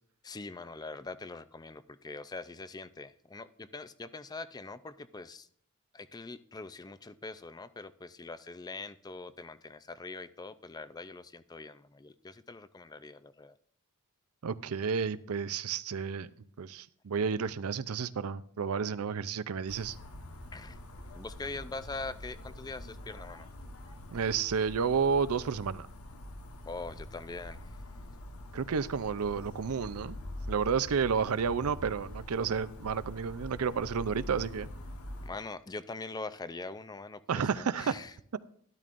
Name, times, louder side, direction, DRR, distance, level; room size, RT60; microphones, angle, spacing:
voice 1, 0.2-5.5 5.9-13.5 20.5-20.8 21.1-23.5 26.7-27.6 35.3-38.1, left 3 dB, 20° left, 0.4 m, -43 dB
voice 2, 14.4-16.3 16.6-20.0 24.1-25.9 28.5-30.2 30.5-34.7 37.3-38.0, right 6 dB, 90° right, 0.5 m, -31 dB
sound 1, 19.7-35.3, left 1 dB, 90° left, 1.2 m, -45 dB
12.5 x 12.0 x 2.5 m
head